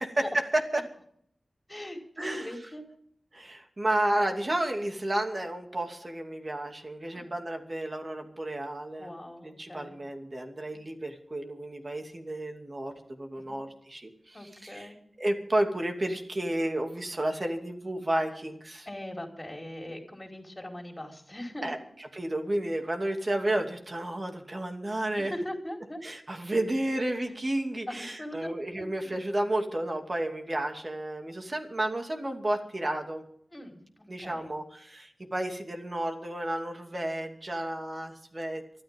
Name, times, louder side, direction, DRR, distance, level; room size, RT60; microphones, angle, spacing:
voice 1, 0.2-0.8 2.2-2.5 3.3-9.1 9.4-14.9 15.2-18.9 21.6-21.8 22.1-25.3 26.0-33.2 34.1-38.6, right 1 dB, 35° right, 4 dB, 2.6 m, -31 dB
voice 2, 1.7-2.9 7.1-7.3 9.0-10.0 13.5-13.6 14.3-15.0 18.9-21.7 25.3-26.0 27.9-28.9 33.5-34.5, left 1 dB, 20° left, 2 dB, 4.6 m, -41 dB
23.5 x 13.0 x 3.7 m, 0.64 s
wide cardioid pair, 80°, 0 cm